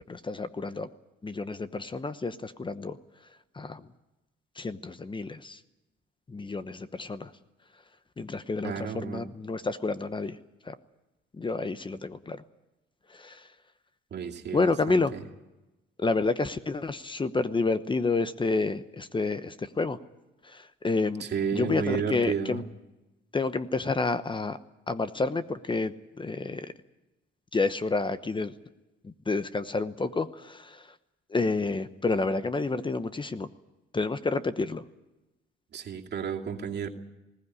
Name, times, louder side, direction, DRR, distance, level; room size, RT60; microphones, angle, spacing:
voice 1, 0.1-0.9 1.2-3.0 3.6-3.8 4.6-5.6 6.3-7.3 8.2-10.4 10.7-10.8 11.4-12.4 13.1-13.4 14.5-15.1 16.0-20.0 20.5-21.3 21.5-22.6 23.3-24.6 24.9-26.7 27.5-28.5 29.0-30.9 31.3-33.5 33.9-34.8, left 3 dB, 25° left, 12 dB, 0.9 m, -29 dB
voice 2, 8.6-9.3 14.1-15.2 21.2-22.6 35.7-36.9, right 6 dB, 60° right, 1 dB, 2.5 m, -32 dB
20.5 x 16.5 x 9.8 m, 1.0 s
cardioid pair, 90°, 20 cm